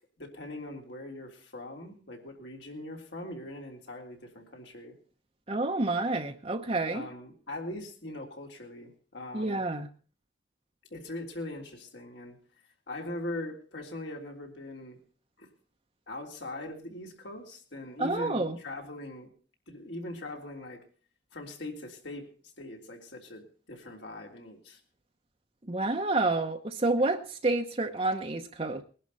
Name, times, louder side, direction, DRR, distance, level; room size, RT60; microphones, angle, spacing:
voice 1, 0.2-5.0 6.9-9.6 10.9-12.4 12.9-15.0 15.4-15.5 16.1-19.3 19.7-20.8 21.3-22.3 22.6-24.8, left 1 dB, 75° left, 1 dB, 3.4 m, -41 dB
voice 2, 5.5-7.1 9.3-9.9 18.0-18.6 25.7-28.8, right 2 dB, 30° right, 4 dB, 0.9 m, -29 dB
20.5 x 11.0 x 4.1 m, 0.40 s
head